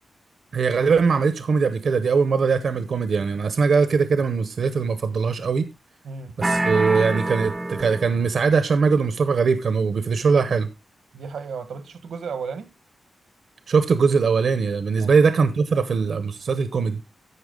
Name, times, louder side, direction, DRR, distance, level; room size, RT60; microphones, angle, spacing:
voice 1, 0.5-5.7 6.4-10.7 13.7-17.0, right 5 dB, 60° right, 0.8 m, -21 dB
voice 2, 6.0-6.4 11.1-12.7 15.0-15.2, right 5 dB, 85° right, 1.3 m, -34 dB
sound 1, 6.4-8.4, right 2 dB, 15° right, 0.6 m, -26 dB
13.5 x 5.7 x 3.8 m
wide cardioid pair, 150°, 0 cm